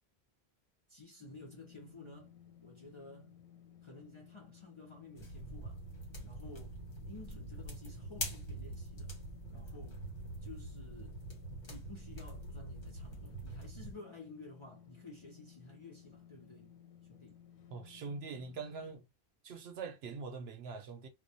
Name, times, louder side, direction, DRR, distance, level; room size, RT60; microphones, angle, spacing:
voice 1, 0.9-2.3 2.6-3.4 3.8-5.8 6.2-9.1 9.5-10.1 10.4-11.2 11.7-16.7 17.0-17.4, left 2 dB, 40° left, 0.4 m, -53 dB
sound 1, 1.2-19.0, left 9 dB, 85° left, 0.8 m, -58 dB
sound 2, 5.2-14.0, right 1 dB, 60° left, 1.1 m, -45 dB
voice 2, 17.7-19.0 19.4-21.1, right 4 dB, 75° right, 0.9 m, -43 dB
2.2 x 2.1 x 2.6 m
omnidirectional pair, 1.1 m